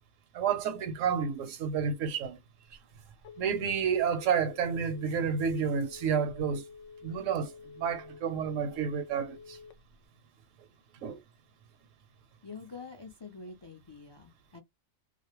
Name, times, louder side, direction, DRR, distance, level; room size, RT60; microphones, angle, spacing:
voice 1, 0.3-2.4 3.4-6.6 7.0-9.6 11.0-11.2, right 6 dB, 75° right, 1.0 m, -30 dB
Telephone, 2.7-10.0, left 5 dB, 75° left, 0.9 m, -50 dB
voice 2, 12.4-14.6, left 4 dB, 35° left, 0.4 m, -46 dB
2.3 x 2.0 x 2.9 m
omnidirectional pair, 1.4 m